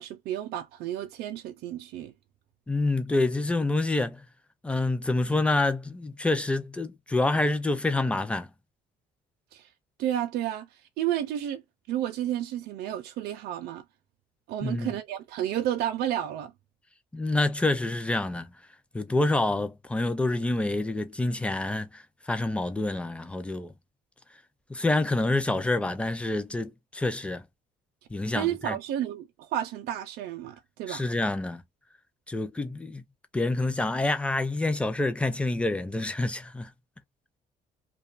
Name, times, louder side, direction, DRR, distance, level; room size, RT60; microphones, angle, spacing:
voice 1, 0.0-2.1 9.5-9.7 10.0-10.7 11.0-11.6 11.9-13.8 14.5-16.5 28.3-31.0, right 11 dB, 70° right, 0.5 m, -31 dB
voice 2, 2.7-4.2 4.6-8.5 14.6-14.9 17.1-18.5 18.9-23.7 24.7-27.4 28.1-28.8 30.9-31.6 32.3-33.0 33.3-36.7, left 2 dB, 5° left, 0.4 m, -27 dB
2.5 x 2.3 x 2.4 m
cardioid pair, 110°, 17 cm